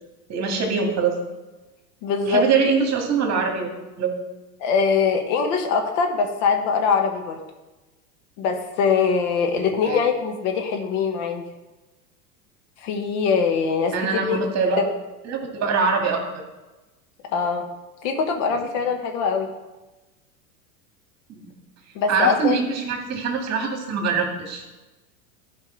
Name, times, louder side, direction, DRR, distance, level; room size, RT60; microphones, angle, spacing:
voice 1, 0.3-1.2 2.3-3.7 4.0-4.1 9.6-10.1 13.9-14.8 15.2-16.2 21.3-21.5 22.1-24.6, right 5 dB, 35° right, 2 dB, 2.2 m, -23 dB
voice 2, 2.0-2.5 4.6-7.4 8.4-11.4 12.8-14.4 17.3-17.6 18.0-19.5 21.9-22.6, left 5 dB, 60° left, 5 dB, 1.5 m, -22 dB
12.5 x 5.3 x 4.0 m, 1.1 s
hypercardioid pair, 95°, 45 cm